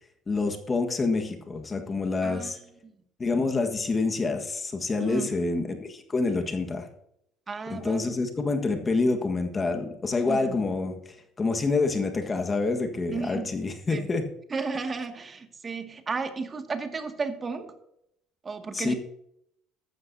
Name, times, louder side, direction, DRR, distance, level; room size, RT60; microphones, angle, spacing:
voice 1, 0.3-2.6 3.2-6.9 7.7-14.2 18.7-18.9, left 3 dB, 30° left, 5 dB, 1.6 m, -27 dB
voice 2, 2.2-2.5 2.8-2.9 5.0-5.3 7.5-8.0 10.3-10.6 13.1-13.6 13.9-14.1 14.5-17.7 18.4-18.9, right 4 dB, 30° right, 5 dB, 2.1 m, -33 dB
14.5 x 12.0 x 2.8 m, 0.75 s
supercardioid pair, 75°, 0 cm